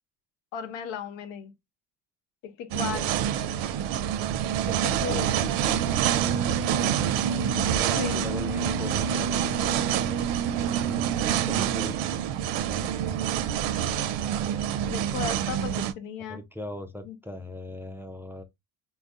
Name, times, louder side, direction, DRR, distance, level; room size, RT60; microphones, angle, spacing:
voice 1, 0.5-1.5 2.4-3.3 4.6-5.3 7.6-8.3 12.8-13.0 14.8-16.4 17.0-17.2, left 7 dB, 80° left, 0.7 m, -36 dB
sound 1, 2.7-15.9, right 9 dB, 65° right, 0.6 m, -26 dB
voice 2, 4.6-6.6 7.7-10.2 10.5-12.1 13.2-13.3 16.3-18.4, left 1 dB, 5° right, 0.3 m, -39 dB
3.4 x 2.2 x 2.4 m
supercardioid pair, 75°, 47 cm